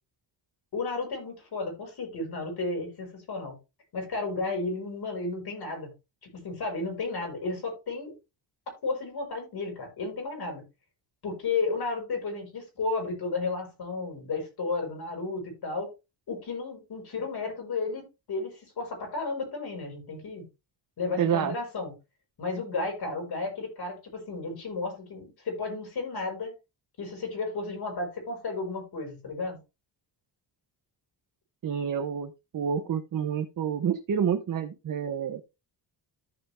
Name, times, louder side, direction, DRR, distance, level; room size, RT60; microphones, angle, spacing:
voice 1, 0.7-3.6 3.9-5.9 6.2-8.2 8.8-10.6 11.2-15.9 16.3-20.5 21.0-21.9 22.4-26.5 27.0-29.6, left 3 dB, 60° left, 5.6 m, -33 dB
voice 2, 21.2-21.5 31.6-35.4, right 8 dB, 45° right, 0.9 m, -28 dB
14.0 x 5.1 x 3.4 m
wide cardioid pair, 165°, 44 cm